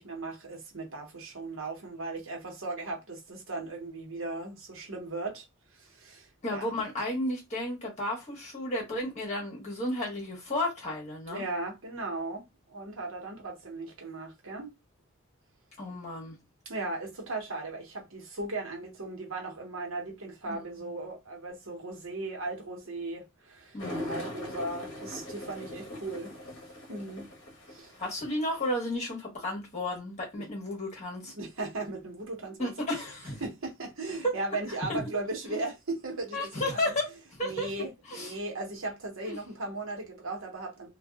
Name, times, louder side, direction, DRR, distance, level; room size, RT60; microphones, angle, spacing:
voice 1, 0.0-5.5 5.7-6.7 11.3-14.7 16.6-23.8 24.1-26.4 26.9-27.3 27.7-27.9 31.3-32.7 33.4-36.8 37.4-40.9, right 2 dB, 65° right, 1.1 m, -37 dB
voice 2, 6.4-11.4 15.8-16.3 20.5-20.9 23.7-24.3 28.0-31.3 32.6-33.4 34.2-34.3 35.5-35.6 36.3-37.7 38.1-38.3 39.2-39.4, left 1 dB, 30° left, 1.3 m, -33 dB
sound 1, 23.8-28.9, left 1 dB, 55° left, 0.9 m, -41 dB
2.7 x 2.5 x 2.3 m
head